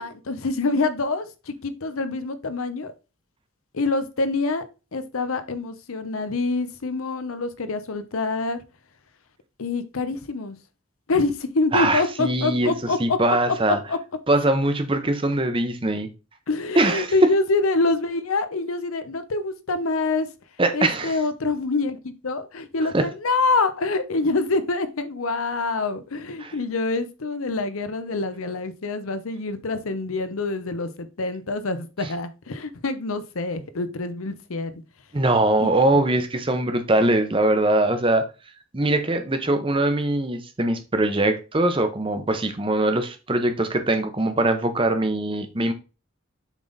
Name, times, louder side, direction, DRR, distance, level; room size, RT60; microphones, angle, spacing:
voice 1, 0.0-2.9 3.7-4.6 4.9-8.6 9.6-10.6 11.1-13.2 13.7-14.0 16.5-20.3 20.7-34.8 35.6-36.0, left 3 dB, 85° left, 0.8 m, -26 dB
voice 2, 11.7-12.7 13.0-13.8 14.3-16.1 16.8-17.1 20.6-21.1 22.9-23.0 26.4-26.5 35.1-38.2 38.7-45.7, right 2 dB, 25° right, 0.7 m, -22 dB
7.2 x 3.6 x 4.0 m
head